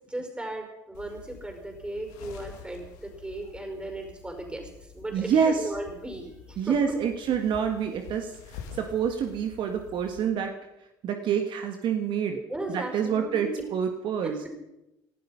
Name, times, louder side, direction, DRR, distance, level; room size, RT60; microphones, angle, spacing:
voice 1, 0.1-4.7 4.9-7.0 12.3-13.6 14.2-14.5, right 1 dB, 10° right, 4 dB, 5.4 m, -36 dB
sound 1, 0.9-10.2, left 7 dB, 85° left, 2.5 m, -47 dB
voice 2, 5.1-5.7 6.6-10.5 11.0-12.4 12.7-14.4, right 7 dB, 60° right, 6 dB, 1.6 m, -27 dB
18.5 x 12.0 x 5.8 m, 0.90 s
supercardioid pair, 75°, 9 cm